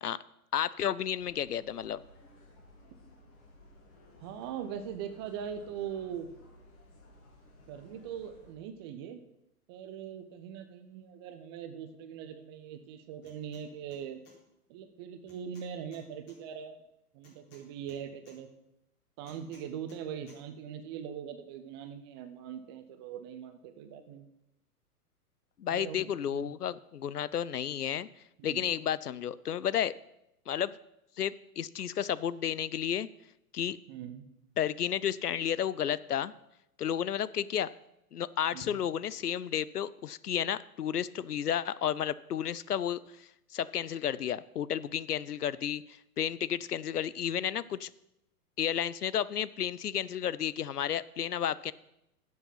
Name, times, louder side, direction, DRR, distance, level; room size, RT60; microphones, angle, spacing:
voice 1, 0.5-2.0 25.6-28.1 28.4-29.9 30.5-30.8 31.2-33.1 33.5-33.8 34.6-36.3 36.8-37.7 38.1-47.9 48.6-51.7, left 9 dB, 80° left, 19 dB, 0.6 m, -32 dB
sound 1, 1.2-8.5, left 1 dB, 30° left, 2.6 m, -57 dB
voice 2, 4.2-6.3 7.7-9.2 9.7-14.2 14.7-16.8 17.1-18.5 19.2-24.3 25.7-26.6 28.5-28.7 33.9-34.2 38.5-38.8, right 8 dB, 15° right, 9 dB, 0.4 m, -41 dB
sound 2, 13.2-13.6 13.9-14.4 15.3-16.4 17.2-18.4 19.2-20.0 20.3-20.4, left 3 dB, 50° left, 4.4 m, -59 dB
11.0 x 7.6 x 5.7 m, 0.84 s
figure-of-eight pair, 110°, 46 cm